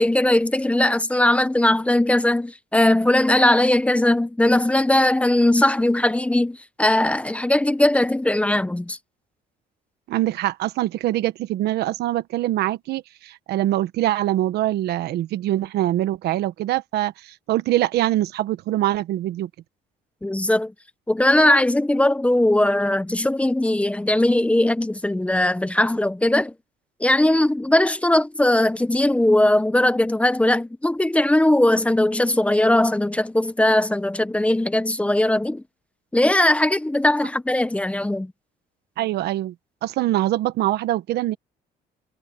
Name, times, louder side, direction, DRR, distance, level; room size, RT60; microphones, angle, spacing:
voice 1, 0.0-9.0 20.2-20.7 21.1-26.5 27.0-35.6 36.1-38.3, left 1 dB, 5° left, 1.1 m, -19 dB
voice 2, 10.1-19.5 39.0-39.5 39.8-41.4, right 14 dB, 75° right, 1.2 m, -23 dB
cardioid pair, 110°, 17 cm